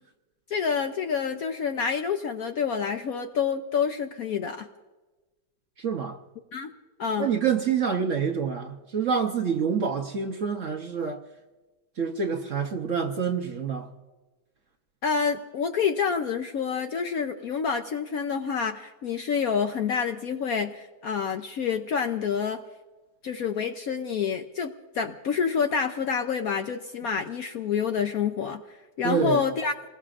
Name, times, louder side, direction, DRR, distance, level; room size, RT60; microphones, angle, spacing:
voice 1, 0.5-4.7 6.5-6.7 7.0-7.3 15.0-22.6 23.2-29.7, left 6 dB, 65° left, 0.9 m, -28 dB
voice 2, 5.8-6.2 7.2-11.2 12.0-13.9 29.0-29.4, right 6 dB, 55° right, 0.9 m, -27 dB
28.0 x 20.0 x 2.5 m
omnidirectional pair, 2.1 m